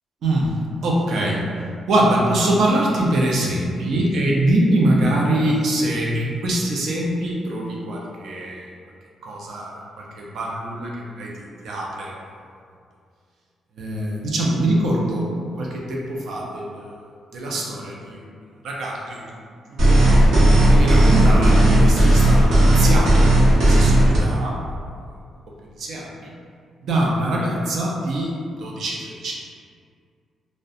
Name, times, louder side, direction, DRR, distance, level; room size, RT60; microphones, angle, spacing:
voice 1, 0.2-0.5 0.8-1.4 1.9-8.7 9.2-12.2 13.8-16.9 17.3-18.2 18.6-19.4 19.7-20.2 20.7-24.6 25.8-26.3 26.8-29.3, right 1 dB, 65° right, -3 dB, 0.4 m, -23 dB
sound 1, 19.8-24.2, right 1 dB, 85° right, 0.8 m, -14 dB
2.4 x 2.1 x 2.6 m, 2.2 s
cardioid pair, 155°, 0 cm